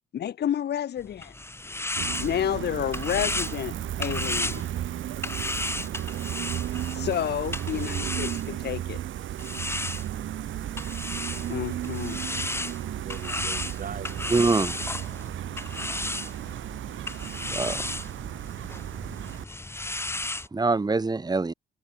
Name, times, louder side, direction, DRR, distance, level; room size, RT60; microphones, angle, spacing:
voice 1, 0.1-1.3 2.2-4.6 6.9-9.0 11.5-12.2, left 10 dB, 55° left, 1.1 m, -30 dB
sound 1, 1.0-8.8 9.4-20.5, left 2 dB, 10° left, 1.8 m, -34 dB
Gull seagull, 2.0-19.4, right 12 dB, 75° right, 5.3 m, -34 dB
voice 2, 12.9-14.6, right 6 dB, 45° right, 6.8 m, -42 dB
voice 3, 14.3-14.8 17.5-17.9 20.5-21.5, right 3 dB, 20° right, 1.8 m, -24 dB
cardioid pair, 90°, 20 cm